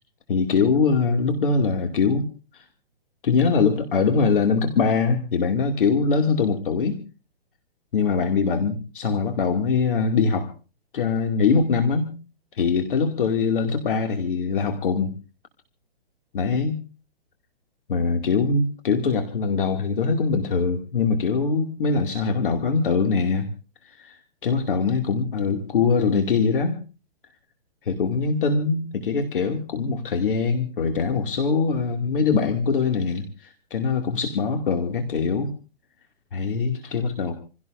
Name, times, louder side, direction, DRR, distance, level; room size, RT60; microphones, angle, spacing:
voice 1, 0.3-2.3 2.5-2.6 3.2-7.0 7.9-10.5 10.9-12.1 12.5-15.1 16.3-16.8 17.9-23.5 23.8-26.8 27.9-35.5 36.3-37.3, left 5 dB, 55° left, 5 dB, 2.5 m, -22 dB
28.5 x 17.0 x 2.6 m, 0.35 s
hypercardioid pair, 170°, 31 cm